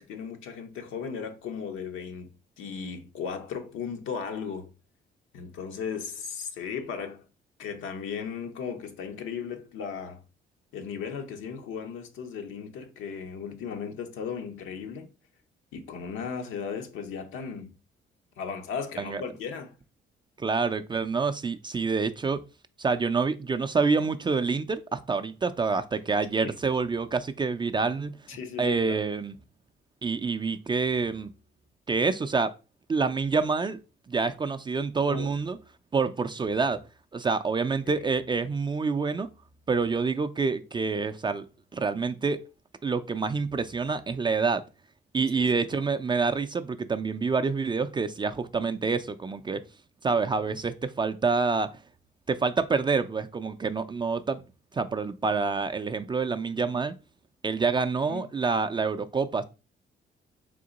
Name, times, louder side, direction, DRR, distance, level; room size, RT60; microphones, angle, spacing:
voice 1, 0.0-4.7 5.3-7.2 7.6-10.2 10.7-15.1 15.7-17.7 18.4-19.7 26.4-26.6 28.3-29.0 35.1-35.3 37.9-38.1 45.3-45.8 58.1-58.2, left 6 dB, 85° left, 0.8 m, -36 dB
voice 2, 20.4-22.4 22.8-28.2 28.6-29.3 30.0-31.3 31.9-32.5 32.9-33.8 34.1-35.6 35.9-36.8 37.1-39.3 39.7-41.5 41.7-42.4 42.8-44.6 45.1-49.7 50.0-51.7 52.3-54.4 54.7-56.9 57.4-59.4, right 4 dB, 25° right, 0.3 m, -27 dB
3.7 x 2.8 x 3.9 m
cardioid pair, 90°, 20 cm